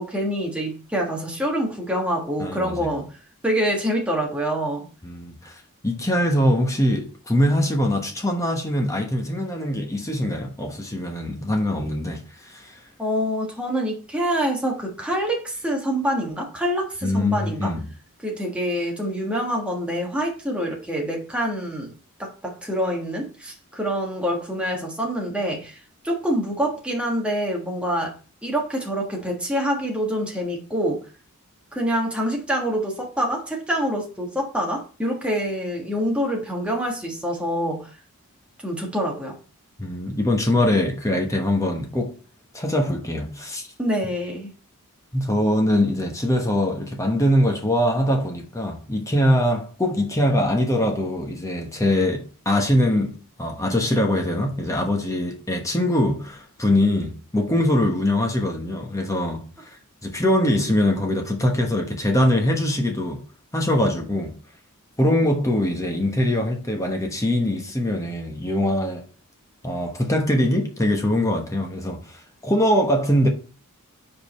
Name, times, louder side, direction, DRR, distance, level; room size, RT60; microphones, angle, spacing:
voice 1, 0.0-3.1 3.4-4.8 13.0-17.7 18.2-21.9 22.2-25.8 26.0-28.2 28.4-31.0 31.7-37.9 38.6-39.4 43.8-44.5, equal, 5° right, 1.4 m, -26 dB
voice 2, 2.4-3.0 5.0-5.5 5.8-12.8 17.0-17.8 39.8-42.1 42.5-43.7 45.1-59.5 60.0-63.2 63.5-64.3 65.0-69.0 69.6-72.2 72.4-73.3, left 1 dB, 15° left, 1.0 m, -22 dB
5.2 x 4.9 x 4.2 m
head